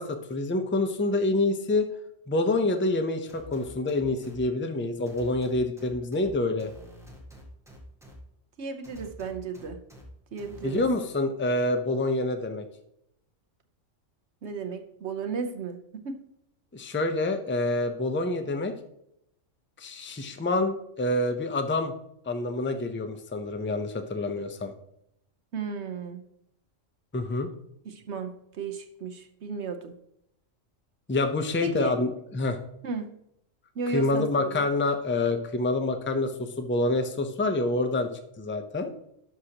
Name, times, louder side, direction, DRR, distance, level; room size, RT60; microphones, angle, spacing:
voice 1, 0.0-1.9 2.3-6.7 10.6-12.7 16.7-18.7 19.8-21.9 22.3-24.7 27.1-27.5 31.1-32.1 32.3-32.6 33.9-38.1 38.4-38.9, left 2 dB, 15° left, 6 dB, 0.5 m, -27 dB
sound 1, 3.3-4.4 5.1-6.2 6.6-8.1 8.8-10.0 10.4-10.8, right 1 dB, ahead, 1.6 m, -49 dB
voice 2, 8.6-9.8 10.3-10.8 14.4-16.2 25.5-26.2 27.8-29.9 31.6-31.9 32.8-33.1 33.8-34.6, right 5 dB, 60° right, 6 dB, 1.1 m, -34 dB
11.5 x 6.4 x 2.9 m, 0.77 s
omnidirectional pair, 1.3 m